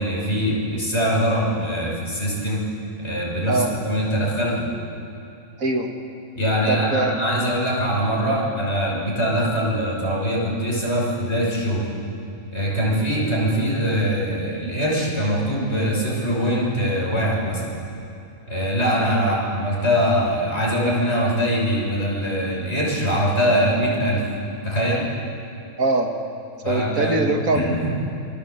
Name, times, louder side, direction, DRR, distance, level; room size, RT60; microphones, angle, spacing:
voice 1, 0.0-2.6 3.0-4.7 6.3-11.9 12.5-17.8 18.5-24.2 24.6-25.1 26.6-27.2 27.5-28.0, equal, 50° left, -4 dB, 6.6 m, -22 dB
voice 2, 5.6-5.9 6.7-7.1 12.9-13.0 19.0-19.4 25.8-26.1 26.7-27.8, right 2 dB, 70° right, 3 dB, 2.2 m, -23 dB
27.0 x 20.0 x 8.0 m, 2.8 s
omnidirectional pair, 1.5 m